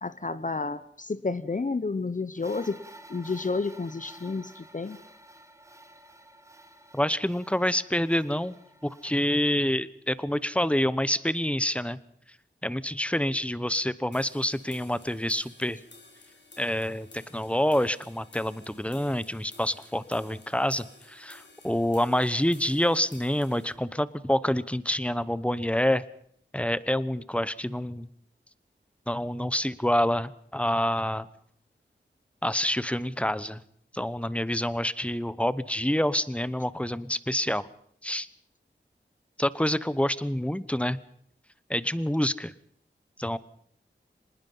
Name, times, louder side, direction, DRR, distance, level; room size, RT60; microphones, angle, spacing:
voice 1, 0.0-2.8 3.1-5.0, left 3 dB, 40° left, 13 dB, 0.9 m, -31 dB
sound 1, 2.4-9.4, right 1 dB, 15° right, 2.0 m, -51 dB
voice 2, 6.9-8.6 8.8-12.0 12.6-15.8 16.6-26.0 26.5-28.1 29.1-31.3 32.4-33.6 33.9-37.7 38.0-38.3 39.4-41.0 41.7-42.5 43.2-43.4, left 1 dB, 5° left, 17 dB, 1.0 m, -27 dB
sound 2, 14.1-23.7, left 3 dB, 65° left, 4.9 m, -53 dB
25.0 x 20.0 x 5.6 m, 0.65 s
wide cardioid pair, 65°, 19 cm